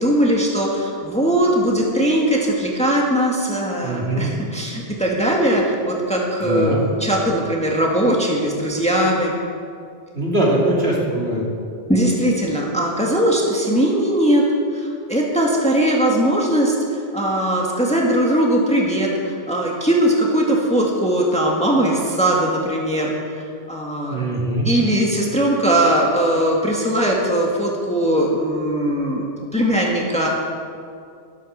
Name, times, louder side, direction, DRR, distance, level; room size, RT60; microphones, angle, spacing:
voice 1, 0.0-9.3 11.9-14.5 14.7-24.3 24.6-29.3 29.5-30.3, right 1 dB, 5° left, -2 dB, 1.8 m, -20 dB
voice 2, 3.8-4.3 6.4-6.8 10.1-11.4 24.1-24.7, right 1 dB, 60° right, -4 dB, 3.2 m, -21 dB
12.0 x 11.5 x 6.6 m, 2.4 s
omnidirectional pair, 1.2 m